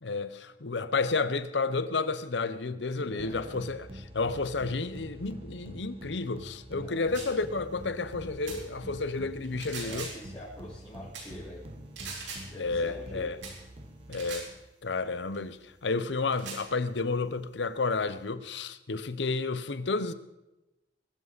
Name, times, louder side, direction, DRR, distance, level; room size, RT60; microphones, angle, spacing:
voice 1, 0.0-10.1 12.6-13.4 14.1-14.5 14.8-20.1, left 3 dB, 70° left, 0.8 m, -31 dB
voice 2, 2.9-3.5 6.8-7.1 9.8-11.6 12.5-13.3, left 1 dB, 25° left, 4.2 m, -46 dB
sound 1, 3.2-14.7, equal, 35° right, 1.4 m, -46 dB
sound 2, 7.1-7.4 8.5-8.6 9.4-10.3 11.1-11.3 12.0-12.5 13.4-13.6 14.1-14.5 15.3-15.4 16.3-16.7, right 4 dB, 85° right, 4.1 m, -41 dB
21.5 x 12.5 x 4.1 m
head